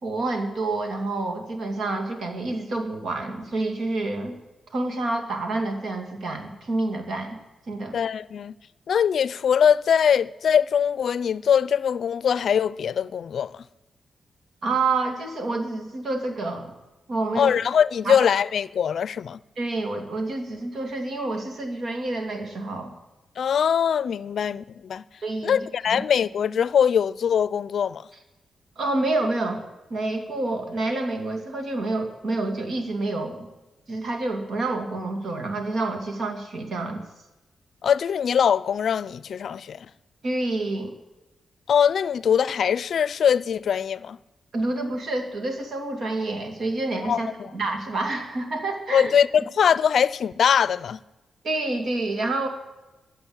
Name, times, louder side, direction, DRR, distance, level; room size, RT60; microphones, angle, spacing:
voice 1, 0.0-4.4 4.7-7.4 7.7-8.0 14.6-16.7 17.1-17.5 18.0-18.3 19.6-22.9 25.2-26.0 28.8-29.6 29.9-33.5 33.9-37.0 40.2-40.9 44.5-49.1 51.4-52.5, right 2 dB, 65° right, 2.5 m, -28 dB
voice 2, 7.9-8.5 8.9-13.6 17.4-19.4 23.4-25.0 25.4-28.1 37.8-39.9 41.7-44.2 47.0-47.5 48.9-51.0, left 8 dB, 75° left, 0.4 m, -22 dB
14.0 x 7.7 x 8.9 m
cardioid pair, 80°, 0 cm